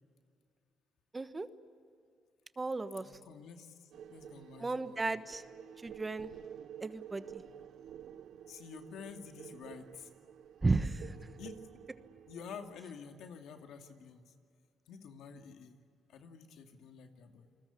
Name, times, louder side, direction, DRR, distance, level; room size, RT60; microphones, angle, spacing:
voice 1, 1.1-1.5 2.6-3.1 4.6-5.4 5.8-6.3 6.8-7.4 10.6-11.1, right 3 dB, 25° right, 11 dB, 1.2 m, -34 dB
voice 2, 3.0-5.1 8.5-10.1 11.4-11.5 12.3-14.3 14.9-15.8 16.1-17.5, left 6 dB, 80° left, 4 dB, 2.4 m, -50 dB
sound 1, 3.9-12.8, right 9 dB, 75° right, 0.8 m, -51 dB
28.5 x 21.0 x 8.5 m, 2.4 s
cardioid pair, 90°, 0 cm